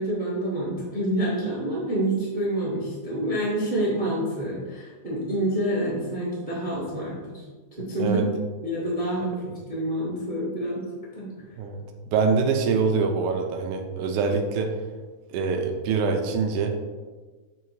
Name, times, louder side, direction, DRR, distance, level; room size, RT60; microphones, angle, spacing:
voice 1, 0.0-7.4 7.7-8.3 8.6-10.8 11.1-11.3, right 1 dB, 50° right, -6 dB, 0.5 m, -27 dB
voice 2, 12.1-14.7 15.3-16.7, right 5 dB, 90° right, 3 dB, 2.1 m, -24 dB
7.6 x 2.8 x 4.5 m, 1.3 s
omnidirectional pair, 3.5 m